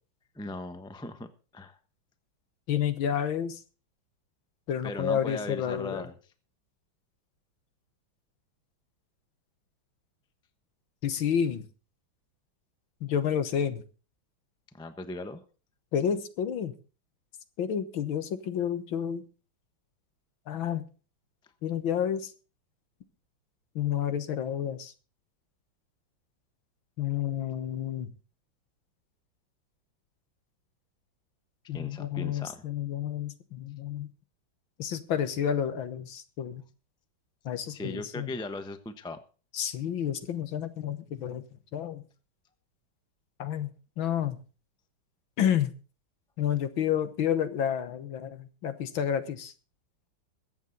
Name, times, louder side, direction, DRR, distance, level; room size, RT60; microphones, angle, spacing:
voice 1, 0.3-1.8 4.8-6.2 14.7-15.4 31.7-32.6 37.7-39.2, left 2 dB, 5° left, 10 dB, 0.4 m, -38 dB
voice 2, 2.7-3.6 4.7-6.0 11.0-11.6 13.0-13.8 15.9-16.7 17.6-19.2 20.5-20.9 21.6-22.3 23.8-24.9 27.0-28.1 31.7-34.1 34.8-36.6 37.5-38.3 39.5-41.4 41.7-42.0 43.4-43.7 44.0-44.4 45.4-45.7 46.4-49.5, left 9 dB, 70° left, 11 dB, 1.9 m, -30 dB
22.0 x 8.2 x 4.0 m, 0.35 s
omnidirectional pair, 2.3 m